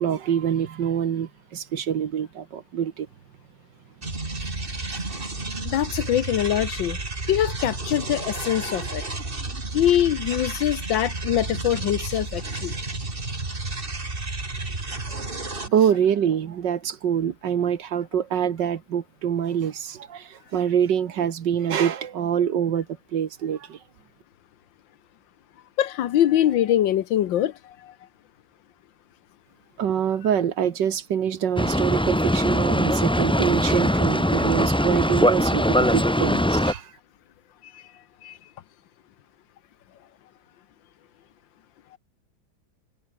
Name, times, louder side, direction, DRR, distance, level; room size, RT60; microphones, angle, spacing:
voice 1, 0.0-3.1 15.1-15.2 15.6-22.9 23.1-23.8 29.8-36.9, right 8 dB, 65° right, 1.9 m, -25 dB
sound 1, 4.0-15.7, right 2 dB, 25° right, 3.0 m, -32 dB
voice 2, 5.6-7.0 7.3-9.0 9.7-12.7 25.8-27.5 38.2-38.3, left 11 dB, 75° left, 1.6 m, -23 dB
Boat Water vehicle, 31.6-36.7, equal, 5° left, 1.7 m, -21 dB
omnidirectional pair, 2.1 m